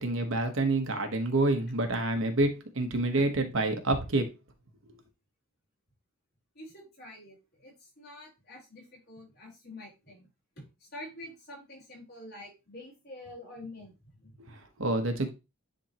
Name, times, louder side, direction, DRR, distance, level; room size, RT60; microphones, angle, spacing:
voice 1, 0.0-4.2 14.4-15.3, right 2 dB, 65° right, 1.1 m, -28 dB
voice 2, 6.5-10.3 10.6-14.4, left 1 dB, 45° left, 4.4 m, -47 dB
10.5 x 3.6 x 2.9 m
head